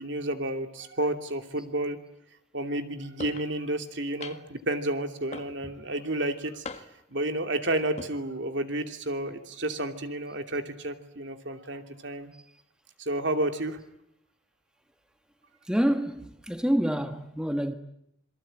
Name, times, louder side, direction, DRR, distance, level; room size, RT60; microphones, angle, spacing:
voice 1, 0.0-2.0 2.5-6.8 7.1-12.3 13.0-13.8, right 1 dB, 65° right, 2.8 m, -31 dB
sound 1, 3.2-3.5 4.2-4.6 5.3-5.8 6.6-7.1 7.8-8.1, left 3 dB, 35° left, 1.6 m, -41 dB
voice 2, 15.7-17.7, equal, 5° right, 1.2 m, -27 dB
27.5 x 23.5 x 9.0 m
head